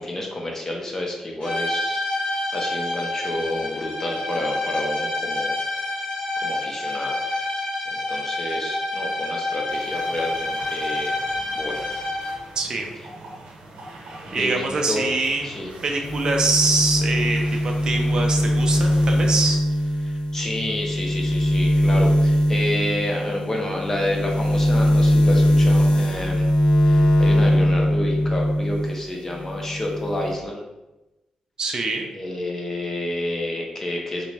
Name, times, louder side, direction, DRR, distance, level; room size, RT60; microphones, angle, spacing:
voice 1, 0.0-5.6 6.4-7.5 7.9-11.2 11.5-11.8 14.3-15.1 15.4-15.7 20.0-26.5 26.8-30.6 32.1-34.3, left 1 dB, 20° left, 0 dB, 0.5 m, -29 dB
sound 1, 1.4-12.5, left 2 dB, 60° left, 0.9 m, -28 dB
sound 2, 9.7-19.5, right 2 dB, 75° right, 0.7 m, -42 dB
voice 2, 12.6-12.9 14.3-15.5 15.8-19.6 31.6-32.1, right 3 dB, 40° right, 2 dB, 0.4 m, -24 dB
sound 3, 16.0-29.0 29.3-30.3, equal, 85° left, 0.5 m, -20 dB
2.9 x 2.2 x 4.0 m, 1.0 s
wide cardioid pair, 165°, 2 cm